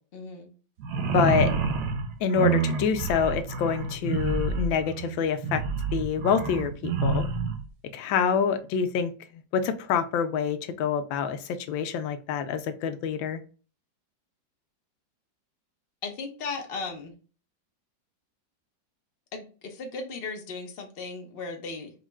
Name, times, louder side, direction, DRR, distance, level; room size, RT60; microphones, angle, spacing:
voice 1, 0.1-0.5 16.0-17.1 19.3-21.9, left 4 dB, 45° left, 0.8 m, -36 dB
sound 1, 0.8-7.6, right 4 dB, 70° right, 1.2 m, -28 dB
voice 2, 1.1-1.5 2.2-5.6 5.9-7.2 7.9-9.1 9.5-13.4, left 6 dB, 90° left, 1.4 m, -26 dB
5.2 x 2.8 x 2.3 m
omnidirectional pair, 2.0 m